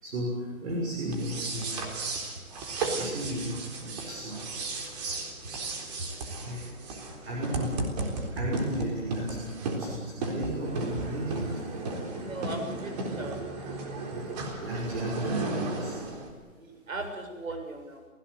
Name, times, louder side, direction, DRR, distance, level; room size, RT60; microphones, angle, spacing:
voice 1, 0.0-1.9 3.0-4.7 6.4-6.6 7.2-7.8 8.3-11.8 14.1-14.2 14.6-16.0, right 1 dB, 50° right, -2 dB, 6.5 m, -34 dB
sound 1, 1.1-16.3, right 2 dB, 30° right, 3.8 m, -35 dB
voice 2, 12.2-12.9 13.2-13.4 16.6-18.0, right 2 dB, 70° right, 5 dB, 7.1 m, -37 dB
30.0 x 17.0 x 8.1 m, 1.4 s
hypercardioid pair, 155°, 42 cm